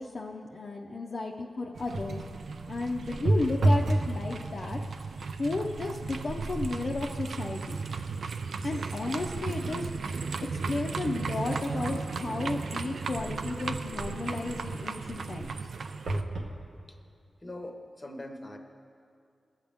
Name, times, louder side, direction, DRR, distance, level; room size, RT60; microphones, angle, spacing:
voice 1, 0.0-2.2 2.7-4.8 5.4-7.8 8.6-9.9 10.5-15.6, left 3 dB, 40° left, -1 dB, 0.5 m, -33 dB
sound 1, 1.8-16.2, right 4 dB, 65° right, 0.4 m, -36 dB
sound 2, 1.9-2.4 3.2-4.1 4.5-5.0 5.7-5.9 6.3-9.8 10.3-10.4 11.1-13.8 16.1-16.6 17.3-17.4 17.6-17.7, right 1 dB, 85° right, 0.9 m, -32 dB
voice 2, 17.4-18.6, left 1 dB, 20° left, 4 dB, 0.8 m, -42 dB
17.0 x 7.2 x 3.5 m, 2.4 s
wide cardioid pair, 140°, 0 cm